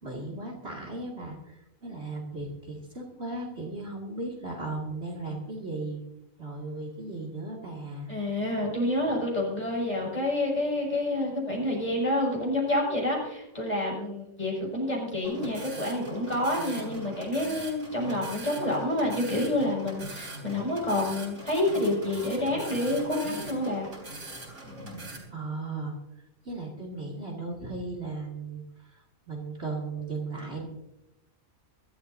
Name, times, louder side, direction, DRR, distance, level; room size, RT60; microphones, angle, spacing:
voice 1, 0.0-6.0 6.4-8.1 25.3-25.9 26.4-30.7, right 2 dB, 50° right, 0 dB, 2.8 m, -36 dB
voice 2, 8.1-23.9, left 1 dB, 30° left, -3 dB, 6.7 m, -28 dB
sound 1, 15.2-25.2, right 1 dB, 70° right, 4.4 m, -41 dB
23.5 x 13.0 x 2.7 m, 0.87 s
omnidirectional pair, 1.5 m